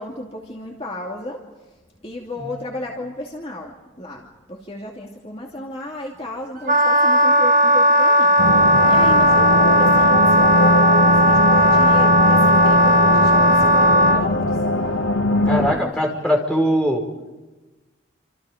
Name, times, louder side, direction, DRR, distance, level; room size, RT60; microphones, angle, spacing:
voice 1, 0.0-1.4 2.0-14.7 15.3-16.0, left 1 dB, 30° left, -1 dB, 2.6 m, -34 dB
Wind instrument woodwind instrument, 6.7-14.2, right 1 dB, 40° right, 1.1 m, -15 dB
sound 1, 8.4-15.7, left 2 dB, 85° left, 1.2 m, -20 dB
voice 2, 15.5-17.0, equal, 5° left, 0 dB, 4.9 m, -21 dB
28.5 x 27.0 x 5.2 m, 1.2 s
head